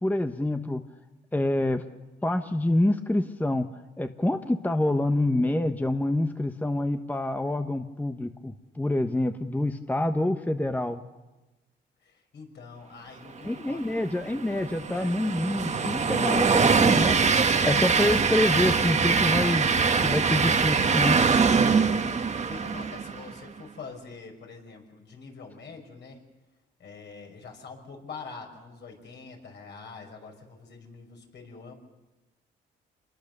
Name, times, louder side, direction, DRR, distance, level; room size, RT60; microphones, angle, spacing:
voice 1, 0.0-0.8 1.3-1.9 2.2-3.7 4.0-11.0 13.4-17.2 17.5-19.7 20.0-21.2, left 1 dB, 10° left, 7 dB, 1.0 m, -27 dB
voice 2, 12.0-13.8 14.9-15.1 21.8-26.2 26.8-31.7, left 4 dB, 60° left, 2 dB, 5.6 m, -45 dB
Train, 13.9-23.3, right 5 dB, 35° right, 1.4 m, -23 dB
26.5 x 21.0 x 6.8 m, 1.1 s
cardioid pair, 90°, 20 cm